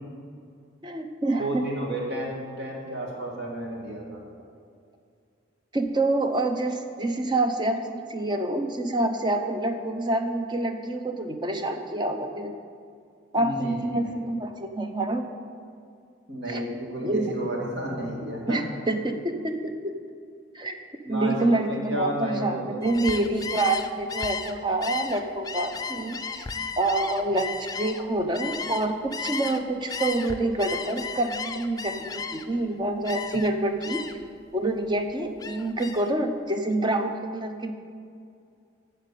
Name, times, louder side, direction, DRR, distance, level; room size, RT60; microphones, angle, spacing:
voice 1, 0.8-1.7 5.7-12.5 13.3-15.3 16.5-16.7 17.0-17.3 18.5-19.9 20.5-20.8 21.1-26.5 26.8-34.0 34.5-37.7, right 2 dB, 25° right, 6 dB, 0.7 m, -27 dB
voice 2, 1.4-4.2 13.3-14.2 16.3-18.6 21.0-23.1, right 1 dB, 60° right, -2 dB, 2.2 m, -32 dB
Gull seagull, 22.8-29.6 29.9-32.6 33.0-33.5 33.8-34.3 34.7-36.1, left 5 dB, 20° left, 0.4 m, -34 dB
8.8 x 6.7 x 8.3 m, 2.3 s
head